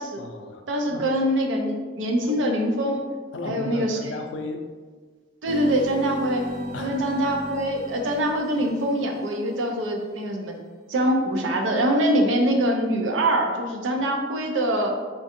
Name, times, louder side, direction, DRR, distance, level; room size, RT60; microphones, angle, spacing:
voice 1, 0.2-1.1 2.2-2.4 3.3-4.6 6.7-7.0, left 3 dB, 75° left, 5 dB, 0.4 m, -35 dB
voice 2, 0.7-3.0 3.4-4.0 5.4-6.5 6.8-10.6 10.9-14.9, right 1 dB, 85° right, 2 dB, 0.5 m, -24 dB
sound 1, 5.5-9.7, equal, 35° right, 0.3 m, -37 dB
3.7 x 2.5 x 2.6 m, 1.5 s
head